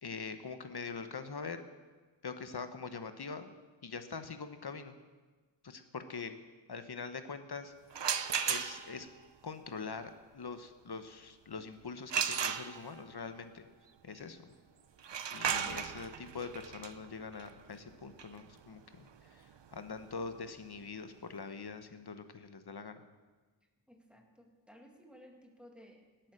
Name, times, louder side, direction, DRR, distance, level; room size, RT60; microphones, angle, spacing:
voice 1, 0.0-1.6 2.2-3.5 3.8-4.9 5.6-6.3 6.7-7.7 8.4-9.1 9.4-13.6 14.0-14.5 15.3-23.0, left 5 dB, 55° left, 9 dB, 1.2 m, -43 dB
sound 1, 7.9-9.1 12.1-13.1 15.0-20.7, right 7 dB, 65° right, 0.8 m, -36 dB
voice 2, 23.9-26.3, equal, ahead, 1 dB, 2.1 m, -57 dB
17.5 x 9.1 x 6.7 m, 1.3 s
wide cardioid pair, 85°, 47 cm